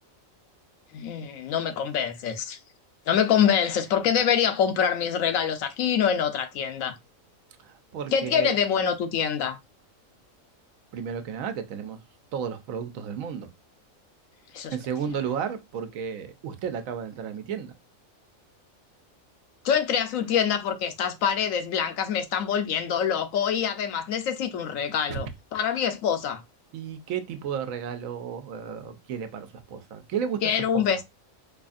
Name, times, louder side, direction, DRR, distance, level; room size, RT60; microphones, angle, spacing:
voice 1, 0.9-2.6 3.1-7.0 8.1-9.6 14.5-14.7 19.6-26.4 30.4-31.0, left 8 dB, 80° left, 1.0 m, -25 dB
voice 2, 7.6-8.5 10.9-12.0 12.3-13.5 14.7-17.7 25.1-25.2 26.7-30.4 30.7-30.8, right 7 dB, 90° right, 1.0 m, -33 dB
4.8 x 2.4 x 2.5 m
omnidirectional pair, 1.4 m